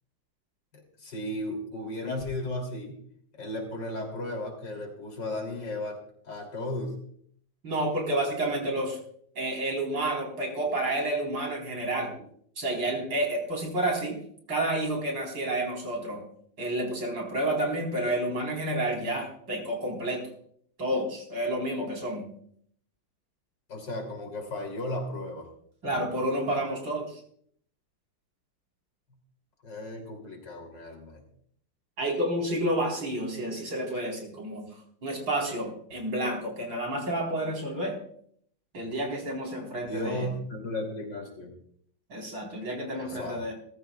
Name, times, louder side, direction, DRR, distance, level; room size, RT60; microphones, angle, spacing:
voice 1, 0.7-3.0 3.3-6.0 6.2-7.0 23.7-25.5 29.6-31.2 39.8-41.5 42.9-43.4, left 1 dB, 65° left, 2 dB, 3.8 m, -35 dB
voice 2, 7.6-9.0 9.4-12.1 12.6-14.2 14.5-16.2 16.6-20.2 20.8-22.3 25.8-27.2 32.0-34.7 35.0-37.9 38.7-40.3 42.1-43.5, right 1 dB, 75° right, 0 dB, 4.9 m, -30 dB
20.0 x 14.0 x 2.4 m, 0.64 s
omnidirectional pair, 2.1 m